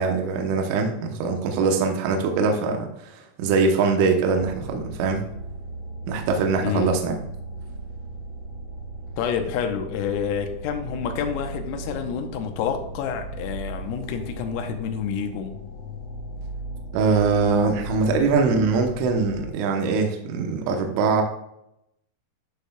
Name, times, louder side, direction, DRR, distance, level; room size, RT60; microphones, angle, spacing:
voice 1, 0.0-5.2 6.1-7.2 16.9-21.2, right 4 dB, 80° right, 3 dB, 3.3 m, -22 dB
sound 1, 4.4-19.5, right 1 dB, 65° left, 4.8 m, -37 dB
voice 2, 6.6-7.0 9.2-15.6, left 7 dB, 85° left, 5 dB, 3.4 m, -28 dB
11.5 x 6.6 x 2.3 m, 0.81 s
omnidirectional pair, 6.0 m